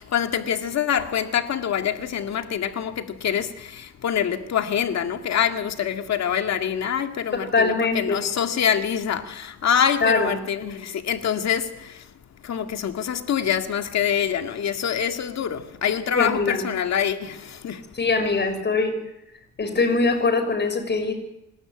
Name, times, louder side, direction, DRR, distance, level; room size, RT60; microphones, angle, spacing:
voice 1, 0.0-12.1 12.4-18.1, left 8 dB, 60° left, 2.2 m, -25 dB
voice 2, 7.4-8.2 10.0-10.3 16.1-16.6 18.0-18.9 19.6-21.1, left 3 dB, 35° left, 6.4 m, -22 dB
26.5 x 12.5 x 9.2 m
cardioid pair, 90°, 30 cm